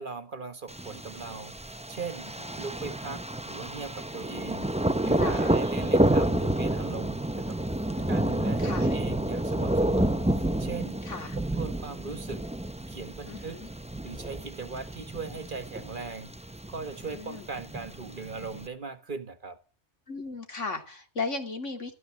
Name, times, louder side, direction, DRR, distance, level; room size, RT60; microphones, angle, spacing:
voice 1, 0.0-1.5 1.9-7.6 8.1-11.1 11.4-12.5 12.9-13.7 14.0-16.3 16.7-19.6, right 4 dB, 45° right, 1.6 m, -39 dB
Thunder, 0.7-18.7, right 1 dB, 5° right, 0.7 m, -29 dB
voice 2, 5.2-5.5 7.9-8.9 11.1-11.4 13.3-13.7 17.0-17.5 20.1-21.9, left 3 dB, 85° left, 3.2 m, -37 dB
13.5 x 13.5 x 7.6 m
omnidirectional pair, 1.2 m